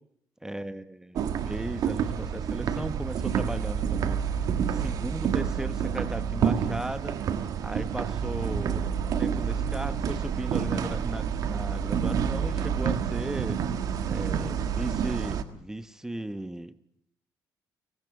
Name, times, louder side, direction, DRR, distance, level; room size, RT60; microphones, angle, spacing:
voice 1, 0.4-4.2 4.7-7.2 7.6-13.6 14.0-16.8, right 1 dB, 10° right, 13 dB, 1.0 m, -36 dB
sound 1, 1.1-15.4, right 7 dB, 65° right, 1.6 m, -28 dB
24.0 x 19.0 x 7.0 m, 0.69 s
cardioid pair, 110°, 7 cm